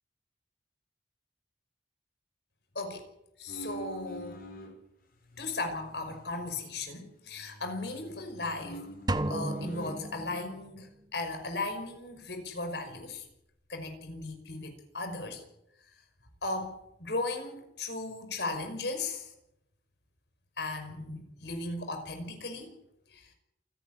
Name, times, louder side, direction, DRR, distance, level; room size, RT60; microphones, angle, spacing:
voice 1, 3.4-4.4 5.4-8.8 9.3-10.9 11.1-13.2 13.7-15.4 16.4-19.3 20.6-22.7 23.1-23.2, left 2 dB, 70° left, 6 dB, 5.7 m, -36 dB
sound 1, 3.5-4.7 5.3-7.0 7.3-10.0, right 1 dB, 55° left, 6.2 m, -47 dB
sound 2, 9.1-10.9, right 1 dB, 25° right, 1.1 m, -33 dB
28.0 x 11.0 x 9.8 m, 0.82 s
head